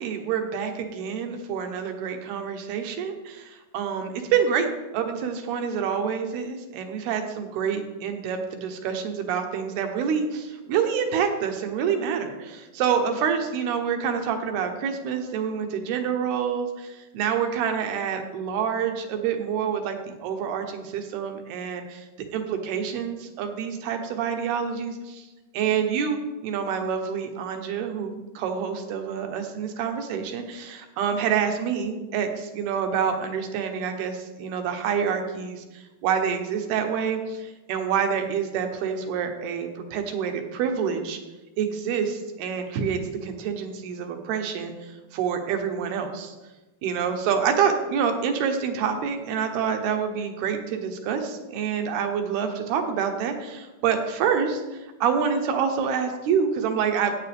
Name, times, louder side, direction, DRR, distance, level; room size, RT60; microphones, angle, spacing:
voice 1, 0.0-20.0 20.2-22.1 22.3-25.3 25.5-41.2 41.6-46.3 46.8-57.2, right 7 dB, 75° right, 5 dB, 2.8 m, -27 dB
14.0 x 8.8 x 3.4 m, 1.1 s
omnidirectional pair, 4.8 m